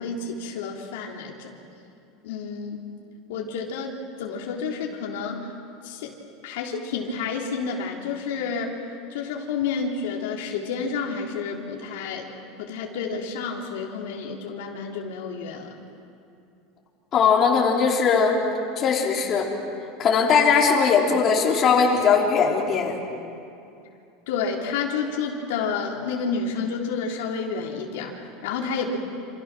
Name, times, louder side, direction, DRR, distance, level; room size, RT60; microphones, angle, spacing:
voice 1, 0.0-1.5 2.2-2.8 3.3-5.5 5.8-6.1 6.4-8.8 9.1-12.3 12.6-15.7 24.3-29.0, left 5 dB, 85° left, -1 dB, 3.6 m, -30 dB
voice 2, 17.1-18.4 18.8-19.5 20.0-23.0, left 6 dB, 30° left, -2 dB, 3.7 m, -19 dB
28.0 x 28.0 x 6.3 m, 2.6 s
supercardioid pair, 155°, 0 cm